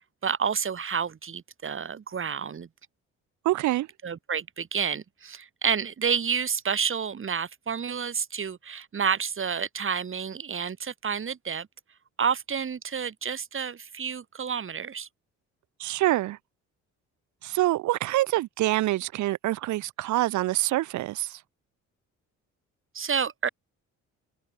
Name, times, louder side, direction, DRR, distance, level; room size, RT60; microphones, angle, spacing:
voice 1, 0.2-2.7 4.0-11.7 12.2-15.1 22.9-23.5, right 6 dB, 45° right, 3.3 m, -29 dB
voice 2, 3.4-3.9 15.8-16.4 17.4-21.4, right 16 dB, 75° right, 0.7 m, -26 dB
cardioid pair, 90°, 30 cm